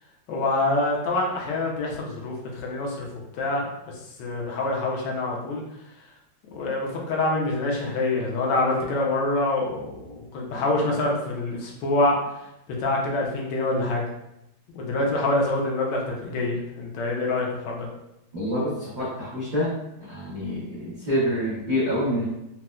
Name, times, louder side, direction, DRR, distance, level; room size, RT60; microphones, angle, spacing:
voice 1, 0.3-3.0 3.3-3.7 4.2-5.6 6.5-12.2 12.7-14.0 14.7-17.9, left 2 dB, 70° left, -2 dB, 1.2 m, -26 dB
voice 2, 18.3-19.7 20.0-22.2, equal, 65° right, -10 dB, 0.4 m, -27 dB
4.2 x 2.1 x 2.3 m, 0.86 s
omnidirectional pair, 2.2 m